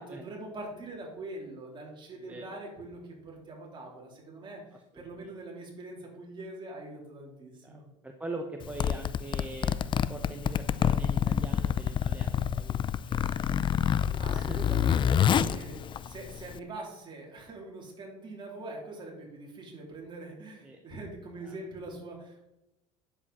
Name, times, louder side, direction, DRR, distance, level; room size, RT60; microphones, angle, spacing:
voice 1, 0.0-4.6 4.9-7.9 14.2-22.5, right 2 dB, 30° right, -2 dB, 3.6 m, -43 dB
voice 2, 2.2-2.5 4.9-5.3 7.6-12.8 13.1-14.6 15.3-15.7 20.6-20.8 21.4-21.6, right 2 dB, 10° right, 3 dB, 1.0 m, -43 dB
Zipper (clothing), 8.6-16.6, left 8 dB, 30° left, 0.4 m, -27 dB
9.6 x 7.6 x 4.3 m, 0.93 s
supercardioid pair, 95°, 16 cm